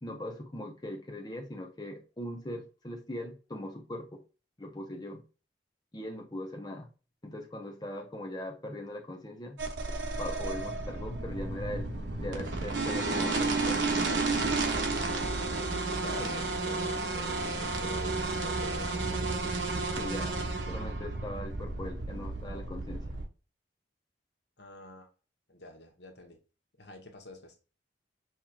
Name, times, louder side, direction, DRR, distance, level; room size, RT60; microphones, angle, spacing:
voice 1, 0.0-4.2 4.6-5.2 5.9-6.9 7.2-9.6 10.2-11.9 12.2-13.9 16.2-16.4 20.0-23.2, left 1 dB, 20° left, 0.8 m, -40 dB
sound 1, 9.6-23.2, right 3 dB, 85° right, 1.1 m, -32 dB
voice 2, 15.6-19.6 24.6-25.1 25.5-26.4 26.8-27.5, left 1 dB, 65° left, 1.1 m, -47 dB
5.6 x 3.1 x 2.4 m
head